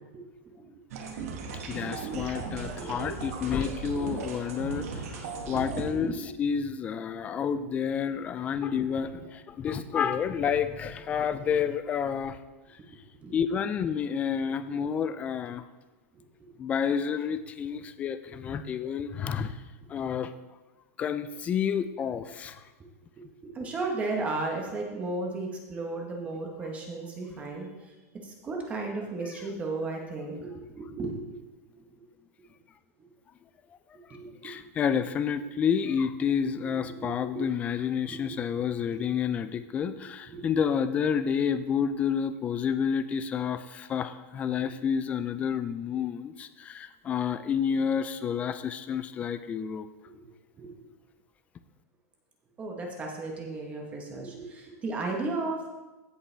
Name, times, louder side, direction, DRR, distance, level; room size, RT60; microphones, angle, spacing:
voice 1, 0.1-0.7 5.2-6.2 13.2-13.3 16.4-16.5 23.2-27.7 28.2-31.4 34.1-34.5 36.7-37.1 37.3-37.5 38.1-38.6 38.9-39.1 40.2-40.4 50.6-50.7 52.6-55.7, right 3 dB, 15° right, 0 dB, 1.1 m, -35 dB
sound 1, 0.9-5.9, right 4 dB, 70° right, 1.8 m, -37 dB
voice 2, 1.7-5.2 5.5-6.1 6.4-12.4 13.3-15.6 16.6-19.6 19.9-20.3 21.0-22.6 34.4-49.9, left 7 dB, 15° left, 12 dB, 0.4 m, -29 dB
16.0 x 5.3 x 3.3 m, 1.1 s
supercardioid pair, 160°, 8 cm